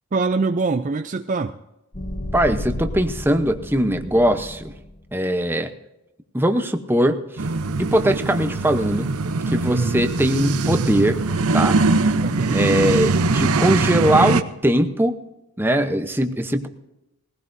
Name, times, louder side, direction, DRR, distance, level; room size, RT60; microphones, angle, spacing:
voice 1, 0.1-1.6 9.7-10.1 12.2-12.7, right 3 dB, 35° right, 8 dB, 0.4 m, -23 dB
sound 1, 1.9-5.1, left 1 dB, 35° left, 1.2 m, -32 dB
voice 2, 2.3-4.6 5.1-5.7 6.3-7.2 7.8-9.1 9.5-11.2 11.5-11.8 12.5-15.2 15.6-16.7, equal, 10° right, 7 dB, 0.8 m, -20 dB
sound 2, 7.4-14.4, right 3 dB, 80° right, 0.7 m, -22 dB
21.0 x 16.0 x 2.7 m, 0.92 s
head